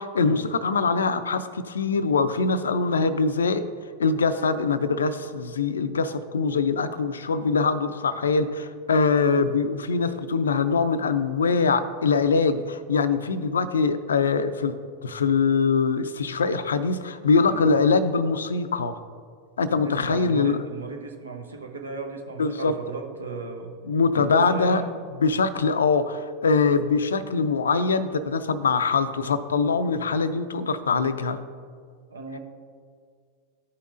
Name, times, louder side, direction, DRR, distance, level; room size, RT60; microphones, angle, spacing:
voice 1, 0.0-3.7 4.0-14.7 15.0-19.0 19.6-20.6 22.4-22.8 23.8-24.8 25.2-31.4, left 4 dB, 80° left, 12 dB, 0.4 m, -23 dB
voice 2, 19.8-23.8 24.1-24.9 32.1-32.4, right 3 dB, 85° right, 3 dB, 0.9 m, -35 dB
13.5 x 5.6 x 2.5 m, 2.1 s
figure-of-eight pair, 90°, 0 cm